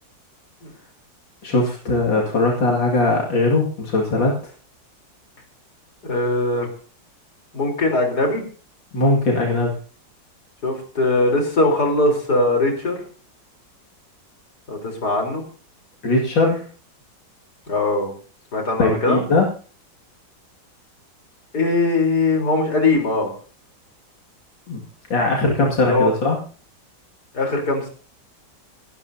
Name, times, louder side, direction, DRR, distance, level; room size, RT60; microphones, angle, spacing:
voice 1, 1.4-4.4 8.9-9.7 16.0-16.7 18.8-19.5 24.7-24.8 25.1-26.4, left 2 dB, 80° left, -2 dB, 3.1 m, -19 dB
voice 2, 6.0-6.7 7.5-8.4 10.6-13.0 14.7-15.4 17.7-18.1 18.5-19.2 21.5-23.3 25.9-26.1 27.3-27.9, left 2 dB, 55° left, 2 dB, 4.6 m, -20 dB
28.0 x 12.5 x 2.8 m, 0.41 s
omnidirectional pair, 2.0 m